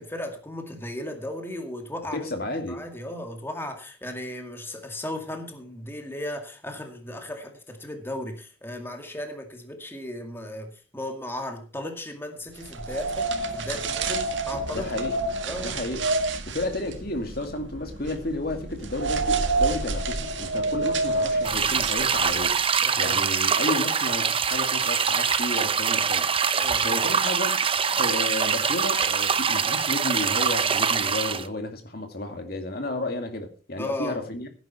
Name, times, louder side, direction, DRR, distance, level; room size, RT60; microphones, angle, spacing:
voice 1, 0.0-15.0 15.4-15.8 22.8-23.2 26.6-27.0 33.8-34.2, left 1 dB, 15° left, 2.2 m, -36 dB
voice 2, 2.1-2.8 14.7-15.1 15.6-16.1 16.5-22.6 23.0-27.6 27.9-34.5, left 2 dB, 55° left, 2.3 m, -32 dB
sound 1, 12.6-22.6, right 3 dB, 85° right, 1.8 m, -29 dB
sound 2, 21.4-31.5, right 6 dB, 30° right, 0.8 m, -24 dB
16.5 x 9.6 x 4.3 m
head